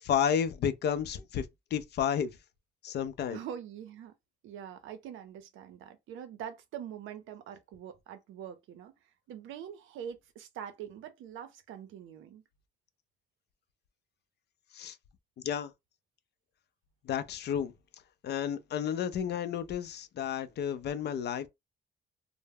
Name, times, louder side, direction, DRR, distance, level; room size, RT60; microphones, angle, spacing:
voice 1, 0.0-1.5 1.7-2.4 2.8-3.4 14.7-15.0 15.4-15.7 17.1-17.7 18.2-21.5, left 8 dB, 60° left, 0.4 m, -31 dB
voice 2, 3.3-4.1 4.4-8.9 9.3-12.4, right 9 dB, 85° right, 0.5 m, -44 dB
2.2 x 2.0 x 3.3 m
cardioid pair, 90°, 20 cm